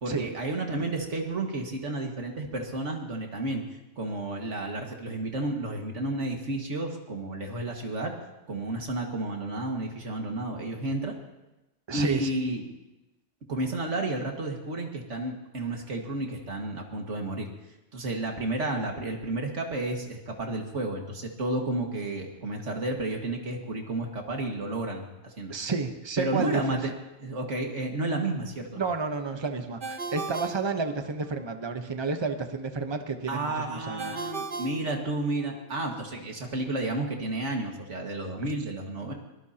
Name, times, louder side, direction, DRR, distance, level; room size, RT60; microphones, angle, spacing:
voice 1, 0.0-3.6 4.0-8.1 8.5-11.1 11.9-12.6 13.5-17.5 17.9-25.5 26.2-26.9 27.2-28.8 33.3-39.1, right 2 dB, 70° right, 2 dB, 2.3 m, -31 dB
voice 2, 11.9-12.3 25.5-26.8 28.8-34.2, right 4 dB, 25° right, 6 dB, 1.0 m, -31 dB
Ringtone, 29.8-31.5 34.0-35.7, right 4 dB, 45° right, 1.2 m, -37 dB
23.5 x 18.5 x 2.9 m, 0.99 s
omnidirectional pair, 1.3 m